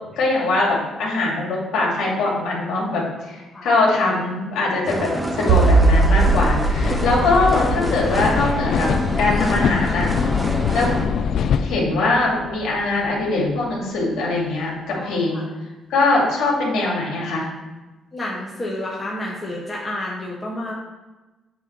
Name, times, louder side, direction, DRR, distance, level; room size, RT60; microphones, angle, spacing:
voice 1, 0.2-8.9 9.2-10.1 10.7-10.9 11.6-15.4 15.9-17.5, left 2 dB, 80° left, -3 dB, 2.5 m, -22 dB
sound 1, 4.9-11.1, right 1 dB, 10° right, 1.0 m, -27 dB
sound 2, 5.5-12.7, right 3 dB, 80° right, 0.5 m, -22 dB
sound 3, 6.7-11.8, left 7 dB, 65° left, 0.3 m, -23 dB
voice 2, 15.0-15.4 18.1-20.7, left 1 dB, 20° left, -5 dB, 1.5 m, -30 dB
8.2 x 3.7 x 5.7 m, 1.1 s
cardioid pair, 90°, 0 cm